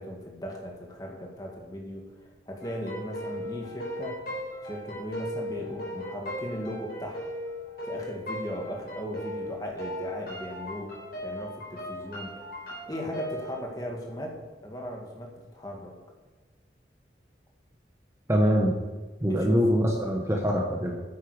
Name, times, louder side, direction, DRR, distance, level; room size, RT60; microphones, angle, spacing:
voice 1, 0.0-4.2 4.6-7.3 7.9-11.0 11.2-12.3 12.9-15.9 19.3-19.6, equal, 20° left, 0 dB, 1.8 m, -37 dB
sound 1, 2.6-13.6, left 1 dB, 60° left, 3.8 m, -37 dB
voice 2, 18.3-18.7 19.2-21.0, equal, 15° right, 1 dB, 1.0 m, -23 dB
9.7 x 8.7 x 4.9 m, 1.3 s
head